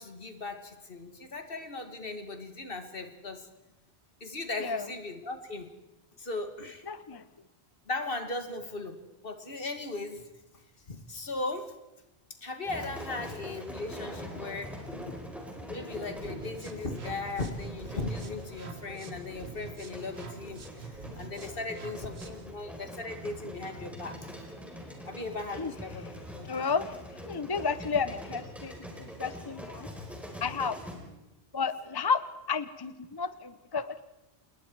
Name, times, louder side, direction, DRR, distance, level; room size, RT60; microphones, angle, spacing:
voice 1, 0.0-3.5 4.2-5.7 6.2-6.8 7.9-9.0 9.2-10.3 10.9-11.7 12.4-15.1 15.7-24.3 25.1-26.1 26.4-26.5, left 2 dB, 55° left, 7 dB, 2.1 m, -37 dB
voice 2, 6.9-7.2 25.6-25.7 26.4-27.0 27.3-28.7 29.0-29.9 30.4-30.8 31.5-34.0, left 5 dB, 25° left, 14 dB, 0.6 m, -32 dB
sound 1, 12.6-30.9, equal, ahead, 4.2 m, -43 dB
sound 2, 16.1-22.5, right 5 dB, 70° right, 1.8 m, -47 dB
27.0 x 21.0 x 4.6 m, 0.99 s
omnidirectional pair, 1.1 m